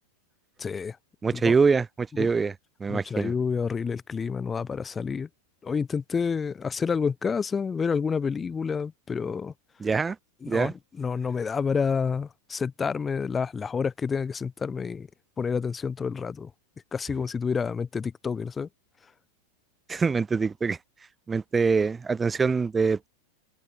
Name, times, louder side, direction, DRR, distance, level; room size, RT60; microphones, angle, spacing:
voice 1, 0.6-1.0 1.3-1.5 2.2-2.3 2.9-5.3 5.6-9.5 10.4-15.1 15.4-16.5 16.9-18.7, left 5 dB, 15° left, 1.8 m, -29 dB
voice 2, 1.2-2.5 2.8-3.3 9.8-10.2 10.5-10.7 19.9-20.8 21.3-23.1, right 5 dB, 15° right, 1.1 m, -24 dB
open air
figure-of-eight pair, 90°, 0 cm